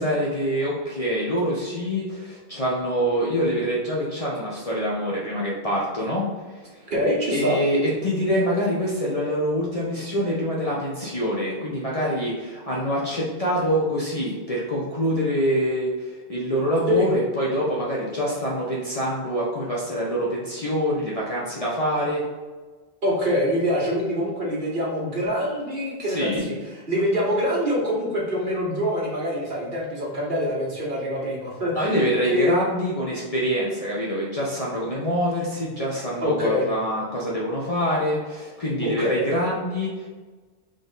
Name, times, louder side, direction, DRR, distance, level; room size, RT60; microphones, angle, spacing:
voice 1, 0.0-6.3 7.3-22.3 26.1-26.5 31.7-40.1, equal, 35° left, -5 dB, 0.8 m, -25 dB
voice 2, 6.9-7.6 16.9-17.1 23.0-31.9 32.3-32.6 36.2-36.7 38.8-39.2, equal, 50° right, -4 dB, 1.5 m, -25 dB
4.0 x 3.3 x 3.9 m, 1.3 s
omnidirectional pair, 1.1 m